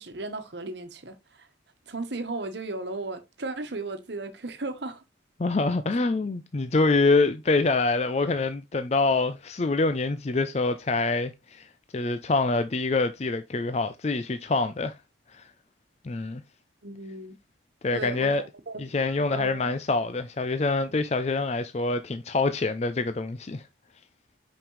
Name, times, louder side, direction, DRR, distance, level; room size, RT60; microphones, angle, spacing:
voice 1, 0.0-1.5 1.9-5.0 16.8-17.3 17.9-18.9 19.3-19.7, right 2 dB, 70° right, 1.2 m, -35 dB
voice 2, 5.4-11.7 11.9-14.9 15.3-15.5 16.0-16.4 17.8-18.4 18.8-23.6, left 3 dB, 35° left, 0.4 m, -25 dB
5.9 x 5.2 x 3.1 m
head